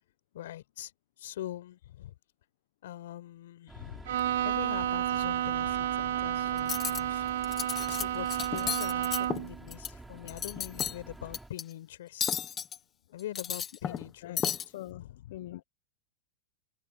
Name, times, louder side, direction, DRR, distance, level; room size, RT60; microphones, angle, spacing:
voice 1, 0.3-0.9 1.2-2.1 2.8-4.1 4.4-7.2 7.9-12.4 13.1-14.6 14.9-15.4, left 13 dB, 85° left, 5.0 m, -43 dB
sound 1, 3.7-11.5, right 2 dB, 5° right, 4.5 m, -49 dB
Bowed string instrument, 4.1-9.6, right 11 dB, 85° right, 1.6 m, -31 dB
Cutlery silverware, 6.6-7.0 7.4-8.0 8.3-9.9 10.2-11.0 11.3-11.6 12.2-12.8 13.2-14.1 14.4-14.6, left 8 dB, 15° left, 1.1 m, -33 dB
voice 2, 14.7-15.6, left 15 dB, 60° left, 0.8 m, -43 dB
supercardioid pair, 175°, 0 cm